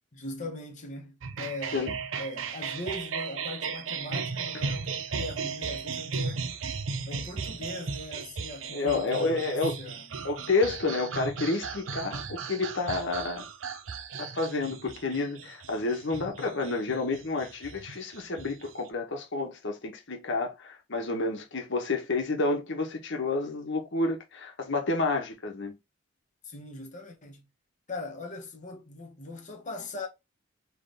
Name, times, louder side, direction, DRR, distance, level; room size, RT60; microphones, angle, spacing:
voice 1, 0.1-6.5 7.1-10.1 26.4-27.5 27.9-30.1, left 2 dB, 40° left, 1.1 m, -40 dB
sound 1, 1.2-18.9, right 5 dB, 70° right, 0.6 m, -36 dB
voice 2, 8.7-9.8 10.2-13.5 14.2-25.7, left 3 dB, 60° left, 1.2 m, -30 dB
3.9 x 3.3 x 3.3 m
head